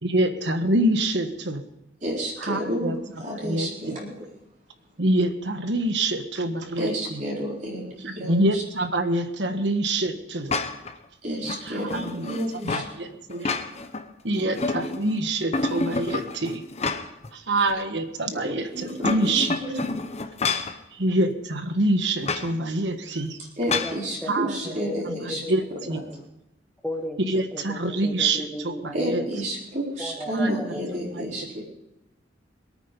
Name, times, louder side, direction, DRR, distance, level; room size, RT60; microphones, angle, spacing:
voice 1, 0.0-1.6 2.4-3.0 3.4-4.0 5.0-7.2 8.0-10.5 11.6-12.3 12.6-13.5 14.2-16.6 17.3-19.5 20.9-23.4 24.3-24.8 25.0-25.1 25.5-26.0 27.3-29.2 30.3-30.6 31.1-31.3, right 1 dB, 70° right, 8 dB, 1.4 m, -26 dB
voice 2, 2.0-4.1 6.8-8.6 11.2-12.8 18.3-18.4 18.7-19.8 23.6-25.4 28.9-31.6, equal, 40° right, -4 dB, 4.1 m, -30 dB
sound 1, 10.5-10.9 11.4-12.9 13.3-14.0 14.4-15.1 15.5-17.3 17.7-17.8 18.8-20.8 22.2-22.5 23.7-24.0, left 3 dB, 35° left, 0.9 m, -29 dB
voice 3, 23.8-25.5 26.1-26.2 26.8-28.9 30.0-31.3, equal, 5° left, 3 dB, 1.5 m, -36 dB
22.0 x 9.0 x 5.3 m, 0.90 s
head